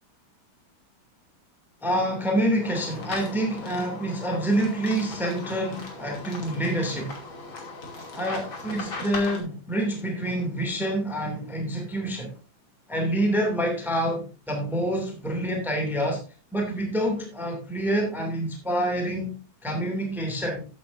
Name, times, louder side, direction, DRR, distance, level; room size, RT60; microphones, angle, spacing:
voice 1, 1.8-7.1 8.1-12.3 12.9-16.2 16.5-19.4 19.6-20.7, right 1 dB, ahead, 2 dB, 2.4 m, -27 dB
sound 1, 2.6-9.4, left 3 dB, 70° left, 3.5 m, -38 dB
15.0 x 8.3 x 2.6 m, 0.33 s
omnidirectional pair, 2.3 m